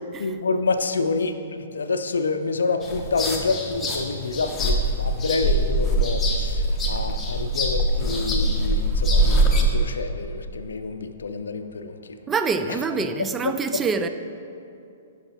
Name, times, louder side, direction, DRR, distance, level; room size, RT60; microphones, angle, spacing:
voice 1, 0.2-12.2 12.7-12.8 13.2-13.5, left 4 dB, 80° left, 0.4 m, -28 dB
sound 1, 2.8-9.6, right 1 dB, 15° left, 0.9 m, -23 dB
voice 2, 12.3-14.1, right 5 dB, 15° right, 0.3 m, -25 dB
10.5 x 5.8 x 2.9 m
hypercardioid pair, 120°, 0 cm